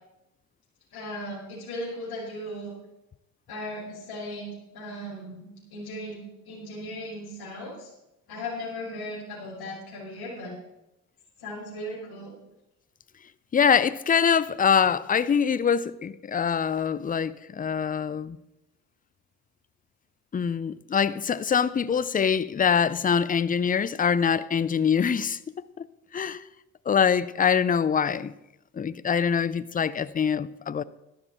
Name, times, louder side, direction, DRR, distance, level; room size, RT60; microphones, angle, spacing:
voice 1, 0.9-2.7 3.5-7.9 8.3-10.6 11.4-12.3, left 1 dB, 55° left, 5.9 m, -37 dB
voice 2, 13.5-18.4 20.3-25.4 25.8-25.9 26.1-26.4 26.9-28.3 28.7-30.8, left 7 dB, 20° left, 0.5 m, -24 dB
12.5 x 12.0 x 4.4 m
hypercardioid pair, 70°, 43 cm